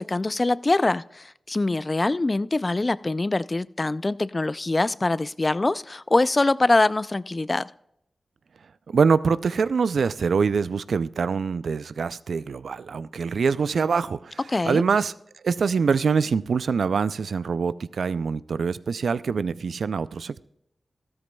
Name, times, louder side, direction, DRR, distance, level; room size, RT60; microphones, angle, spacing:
voice 1, 0.0-7.7 14.5-14.8, left 2 dB, 40° left, 0.3 m, -23 dB
voice 2, 8.9-14.4 14.6-15.1 15.4-20.4, right 5 dB, 80° right, 0.3 m, -24 dB
14.5 x 13.0 x 2.3 m
cardioid pair, 45°, 0 cm